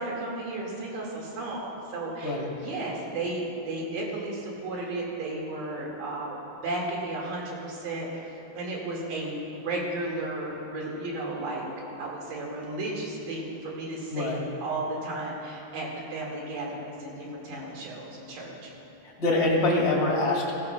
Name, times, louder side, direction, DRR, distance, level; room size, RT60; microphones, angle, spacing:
voice 1, 0.0-6.4 6.6-8.3 8.6-11.7 12.0-18.7, right 2 dB, 65° right, -3 dB, 3.5 m, -34 dB
voice 2, 19.2-20.5, left 2 dB, 30° left, -3 dB, 2.0 m, -24 dB
16.5 x 16.0 x 2.2 m, 2.9 s
omnidirectional pair, 4.3 m